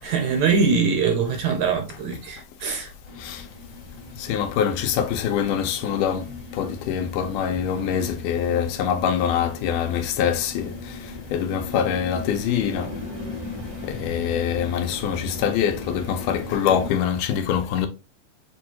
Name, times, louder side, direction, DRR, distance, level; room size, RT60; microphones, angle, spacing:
voice 1, 0.0-2.9, right 5 dB, 70° right, 1.8 m, -22 dB
sound 1, 3.0-16.9, left 2 dB, 25° right, 0.5 m, -37 dB
voice 2, 4.2-6.3 6.5-12.9 13.8-17.9, left 8 dB, 85° left, 2.2 m, -24 dB
6.8 x 2.3 x 2.8 m
omnidirectional pair, 3.7 m